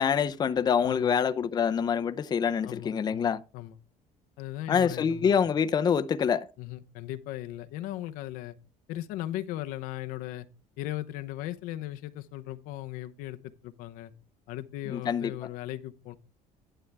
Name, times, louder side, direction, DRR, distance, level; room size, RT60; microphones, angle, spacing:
voice 1, 0.0-3.4 4.7-6.5 14.9-15.3, left 7 dB, 30° left, 0.6 m, -26 dB
voice 2, 0.8-1.1 2.6-3.7 4.4-5.3 6.6-8.5 8.9-10.5 10.8-14.1 14.5-16.2, left 14 dB, 85° left, 0.8 m, -38 dB
11.0 x 7.8 x 3.4 m
cardioid pair, 130°, 14 cm